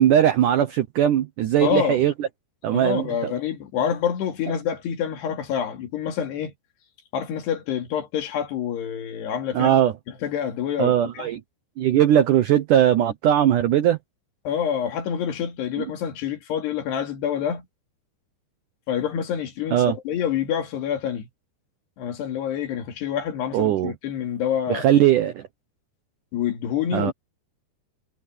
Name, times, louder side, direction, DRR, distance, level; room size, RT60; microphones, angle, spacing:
voice 1, 0.0-2.3 2.6-3.3 9.5-9.9 10.8-11.4 11.8-14.0 19.7-20.0 23.5-23.9 24.7-25.4 26.9-27.1, right 11 dB, 80° right, 1.8 m, -19 dB
voice 2, 1.6-2.0 2.7-6.5 7.1-9.8 10.1-11.3 14.4-17.7 18.9-21.3 22.0-24.9 26.3-27.1, left 9 dB, 70° left, 4.4 m, -27 dB
omnidirectional pair, 5.0 m